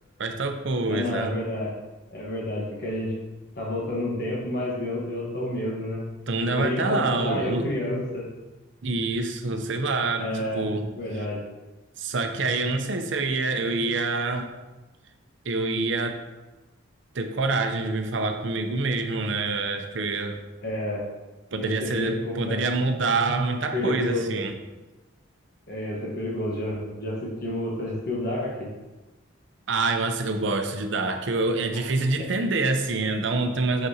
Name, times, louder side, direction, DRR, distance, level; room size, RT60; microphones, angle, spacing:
voice 1, 0.2-1.4 6.3-7.7 8.8-11.0 12.0-14.5 15.4-16.2 17.1-20.4 21.5-24.5 29.7-33.9, right 3 dB, 65° right, 6 dB, 0.6 m, -26 dB
voice 2, 0.9-1.7 2.1-3.2 3.6-6.0 6.5-8.3 10.1-10.6 11.0-11.4 20.6-21.0 21.5-22.6 23.7-24.4 25.7-28.7 31.7-31.8 32.2-32.3, left 1 dB, 50° left, -4 dB, 1.2 m, -30 dB
6.4 x 5.9 x 2.8 m, 1.1 s
head